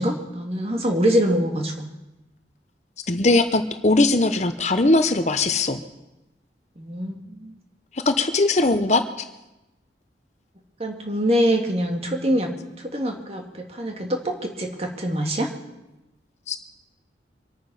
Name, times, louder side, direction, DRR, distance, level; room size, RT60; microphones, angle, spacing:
voice 1, 0.0-1.9 6.8-7.6 10.8-12.5 12.8-15.5, equal, 35° right, 2 dB, 2.1 m, -24 dB
voice 2, 3.1-5.8 8.1-9.0 16.5-16.6, left 2 dB, 40° left, 8 dB, 0.9 m, -20 dB
25.0 x 9.5 x 5.6 m, 0.98 s
head